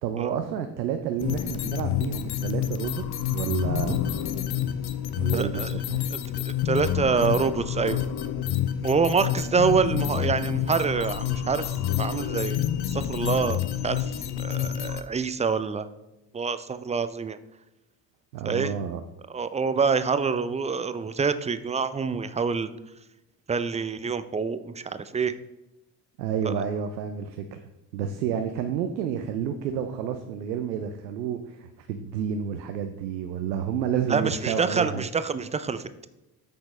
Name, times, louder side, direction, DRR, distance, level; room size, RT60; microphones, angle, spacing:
voice 1, 0.0-4.0 5.2-6.1 18.3-19.0 26.2-27.6 27.9-35.0, right 8 dB, 85° right, 7 dB, 0.6 m, -30 dB
sound 1, 1.2-15.0, left 10 dB, 50° left, 0.8 m, -28 dB
voice 2, 5.3-5.7 6.1-6.2 6.6-8.0 8.8-14.1 14.4-15.9 16.3-17.4 18.4-18.7 19.3-22.7 23.5-25.4 26.4-26.5 34.1-36.1, right 5 dB, 15° right, 12 dB, 0.4 m, -26 dB
8.6 x 6.1 x 3.2 m, 0.97 s
hypercardioid pair, 45°, 50 cm